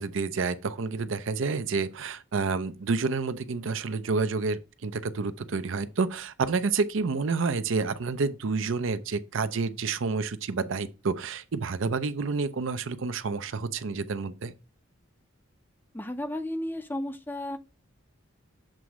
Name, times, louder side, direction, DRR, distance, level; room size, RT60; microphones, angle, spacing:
voice 1, 0.0-14.5, right 4 dB, 70° right, 0.5 m, -29 dB
voice 2, 15.9-17.6, left 1 dB, 10° left, 0.5 m, -33 dB
7.5 x 3.1 x 4.7 m
head